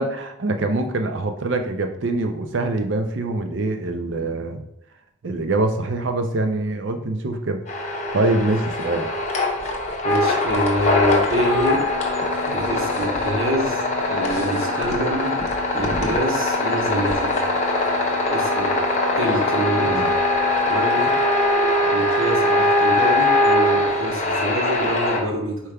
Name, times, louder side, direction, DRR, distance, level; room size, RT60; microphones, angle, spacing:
voice 1, 0.0-4.6 5.2-7.6 8.1-9.1 19.8-20.1, right 2 dB, 60° right, 6 dB, 0.5 m, -24 dB
sound 1, 7.7-25.2, left 1 dB, 35° left, 0.7 m, -22 dB
voice 2, 10.0-11.8 12.5-13.8 14.1-15.3 15.7-17.4 18.3-18.8 19.2-19.9 20.7-21.1 21.8-25.6, right 1 dB, 75° right, 0 dB, 1.1 m, -26 dB
sound 2, 11.7-21.7, left 4 dB, 80° left, 0.5 m, -33 dB
4.9 x 4.5 x 2.3 m, 0.80 s
head